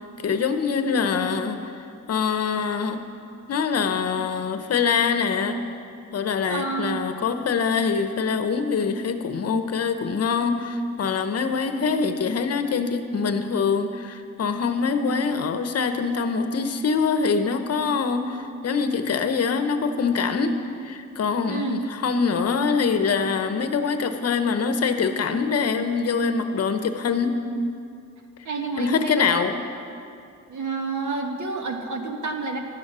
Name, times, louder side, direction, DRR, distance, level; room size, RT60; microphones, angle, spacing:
voice 1, 0.2-1.7 2.1-3.0 3.5-5.6 6.1-20.6 20.8-27.4 28.8-29.6, left 5 dB, 50° left, 8 dB, 0.9 m, -24 dB
voice 2, 6.5-7.0 21.5-21.8 28.4-29.4 30.5-32.6, right 4 dB, 65° right, 3 dB, 1.5 m, -29 dB
13.0 x 9.3 x 6.1 m, 2.5 s
cardioid pair, 110°, 32 cm